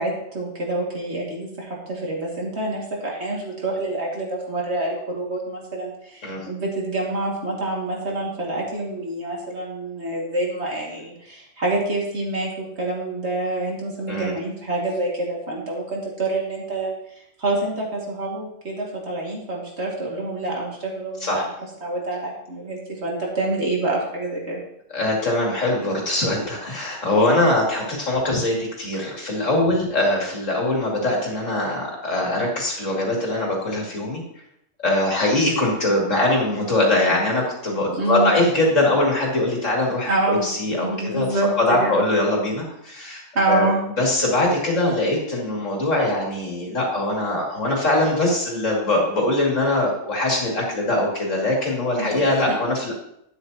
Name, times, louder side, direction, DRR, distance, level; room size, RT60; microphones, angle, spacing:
voice 1, 0.0-16.9 17.4-21.5 21.8-24.6 37.9-38.3 40.1-40.5 40.7-42.1 43.3-43.8 52.0-52.2 52.5-52.6, right 2 dB, 60° right, -3 dB, 2.6 m, -27 dB
voice 2, 24.9-34.2 34.8-43.7 44.0-52.9, left 1 dB, 80° left, -2 dB, 3.0 m, -22 dB
11.0 x 9.9 x 2.9 m, 0.75 s
omnidirectional pair, 1.3 m